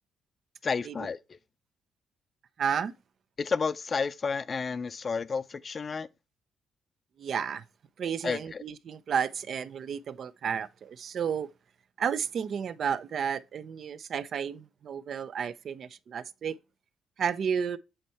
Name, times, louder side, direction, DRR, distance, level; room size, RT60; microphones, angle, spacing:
voice 1, 0.6-1.2 3.4-6.1 8.2-8.6, left 5 dB, 40° left, 0.5 m, -31 dB
voice 2, 2.6-2.9 7.2-7.6 8.0-11.5 12.0-16.6 17.2-17.8, right 7 dB, 60° right, 0.5 m, -32 dB
7.8 x 4.4 x 4.1 m
cardioid pair, 90°, 0 cm